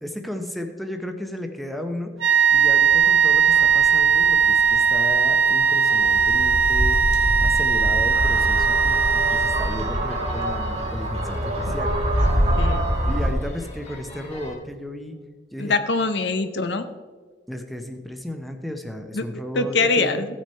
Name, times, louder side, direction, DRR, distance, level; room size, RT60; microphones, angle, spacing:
voice 1, 0.0-7.0 7.4-12.0 13.1-15.2 15.5-15.8 17.5-20.2, left 1 dB, ahead, 5 dB, 0.8 m, -34 dB
sound 1, 2.2-10.1, right 6 dB, 85° right, 0.9 m, -19 dB
sound 2, 2.4-14.6, equal, 35° left, 2.1 m, -41 dB
sound 3, 6.1-13.3, equal, 35° right, 1.5 m, -24 dB
voice 2, 12.6-12.9 15.6-16.9 19.1-19.3 19.6-20.3, left 3 dB, 70° left, 10 dB, 0.7 m, -23 dB
15.5 x 6.3 x 4.3 m, 1.4 s
head